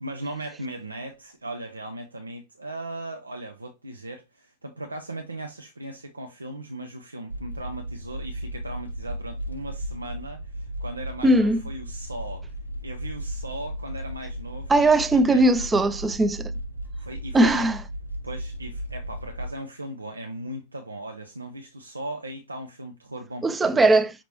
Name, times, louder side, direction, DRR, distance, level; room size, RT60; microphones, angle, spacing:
voice 1, 0.0-12.5 12.8-15.5 17.0-17.7 18.2-24.0, right 1 dB, 80° right, 0.5 m, -38 dB
sound 1, 7.3-19.6, equal, 85° left, 0.7 m, -35 dB
voice 2, 11.2-11.6 14.7-16.5 17.3-17.7 23.4-24.1, right 2 dB, 15° right, 0.5 m, -19 dB
5.7 x 3.0 x 3.0 m
figure-of-eight pair, 90°, 0 cm